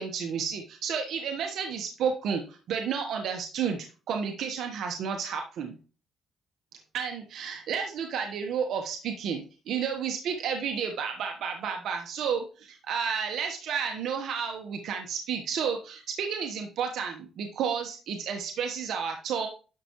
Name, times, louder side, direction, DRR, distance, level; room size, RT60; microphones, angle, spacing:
voice 1, 0.0-5.8 6.9-19.5, right 7 dB, 75° right, 3 dB, 1.2 m, -31 dB
11.0 x 6.8 x 3.0 m, 0.36 s
cardioid pair, 90°, 0 cm